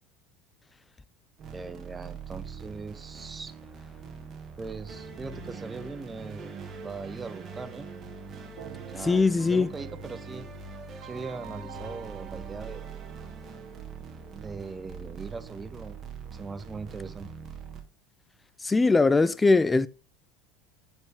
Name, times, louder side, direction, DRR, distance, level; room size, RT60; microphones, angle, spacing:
sound 1, 1.4-17.8, right 5 dB, 35° right, 1.4 m, -43 dB
voice 1, 1.5-3.5 4.6-6.6 6.8-7.9 8.9-10.5 11.0-12.9 14.3-16.0 16.3-17.3, right 4 dB, 20° right, 0.7 m, -40 dB
Keyboard (musical), 8.6-13.5, right 16 dB, 65° right, 0.6 m, -48 dB
voice 2, 9.0-9.7 18.6-19.9, left 3 dB, 15° left, 0.3 m, -21 dB
9.2 x 4.4 x 3.4 m
hypercardioid pair, 75°, 0 cm